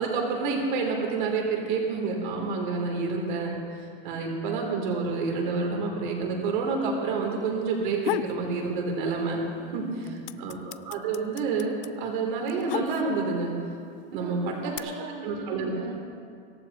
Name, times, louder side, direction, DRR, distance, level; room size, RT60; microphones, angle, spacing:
voice 1, 0.0-3.5 4.0-9.4 9.7-9.8 10.4-13.5 14.1-14.9 15.2-15.7, right 4 dB, 55° right, 0 dB, 3.2 m, -28 dB
sound 1, 7.7-8.4 8.8-9.5 9.8-13.4 14.1-14.8, left 15 dB, 70° left, 0.5 m, -34 dB
voice 2, 9.6-10.4 14.1-15.9, right 4 dB, 75° right, -4 dB, 2.9 m, -40 dB
25.0 x 15.5 x 3.0 m, 2.3 s
supercardioid pair, 180°, 29 cm